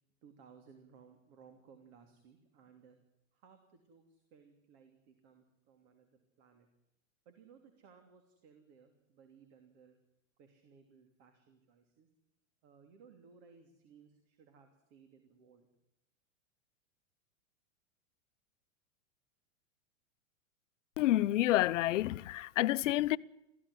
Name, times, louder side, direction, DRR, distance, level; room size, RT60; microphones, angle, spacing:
voice 1, 0.2-3.0 3.3-6.7 7.2-10.0 10.4-12.1 12.6-15.7, right 6 dB, 55° right, 3.0 m, -61 dB
voice 2, 21.0-23.2, left 15 dB, 70° left, 0.8 m, -29 dB
19.0 x 15.0 x 9.9 m
hypercardioid pair, 120°, 39 cm